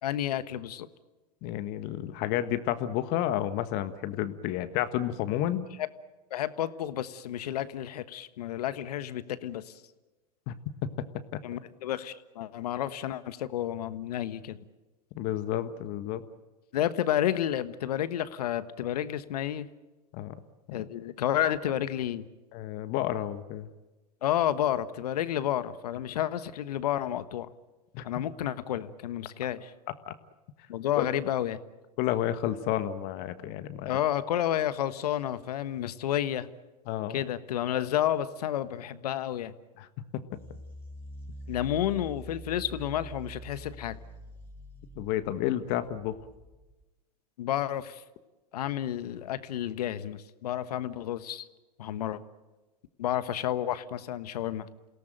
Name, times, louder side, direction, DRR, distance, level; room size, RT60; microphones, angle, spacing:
voice 1, 0.0-0.9 6.3-9.8 11.4-14.6 16.7-19.7 20.7-22.3 24.2-27.5 28.0-29.7 30.7-31.6 33.8-36.5 37.1-39.5 41.5-44.0 47.4-48.0 48.5-51.5 51.8-52.2 53.0-54.7, left 11 dB, 70° left, 14 dB, 1.4 m, -31 dB
voice 2, 1.4-5.7 10.5-10.6 10.8-10.9 11.3-11.4 15.1-16.2 20.1-20.3 20.7-20.9 22.5-23.7 27.9-28.0 30.1-30.2 31.0-31.1 32.0-33.9 36.9-37.2 39.8-39.9 40.1-40.2 45.0-46.2, left 12 dB, 45° left, 12 dB, 1.5 m, -31 dB
sound 1, 40.3-46.8, right 1 dB, 10° left, 5.0 m, -45 dB
28.0 x 17.5 x 9.1 m, 1.1 s
hypercardioid pair, 105°, 21 cm